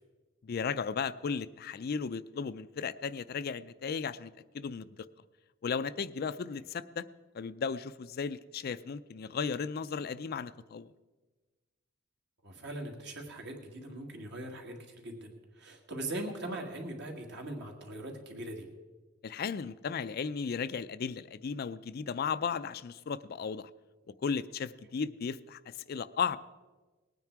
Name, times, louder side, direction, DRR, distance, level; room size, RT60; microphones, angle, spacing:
voice 1, 0.4-5.0 5.6-7.0 7.3-10.9 19.2-23.7 24.2-26.4, left 6 dB, 50° left, 14 dB, 0.4 m, -35 dB
voice 2, 12.4-18.7, right 1 dB, 60° right, 2 dB, 2.1 m, -41 dB
19.0 x 9.3 x 4.6 m, 1.3 s
head